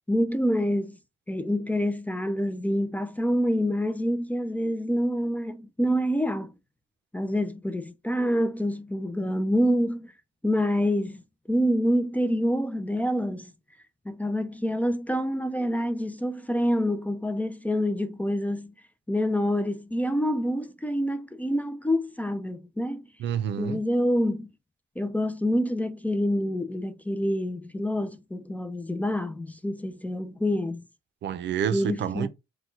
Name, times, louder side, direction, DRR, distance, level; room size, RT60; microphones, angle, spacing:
voice 1, 0.1-1.0 1.3-6.5 7.1-10.1 10.4-11.2 11.5-13.5 14.1-18.7 19.1-23.0 23.6-24.5 25.0-30.8 31.7-32.3, equal, 10° left, 0.4 m, -27 dB
voice 2, 23.2-23.8 31.2-32.3, right 9 dB, 65° right, 0.5 m, -28 dB
4.3 x 2.2 x 4.4 m
cardioid pair, 90°, 20 cm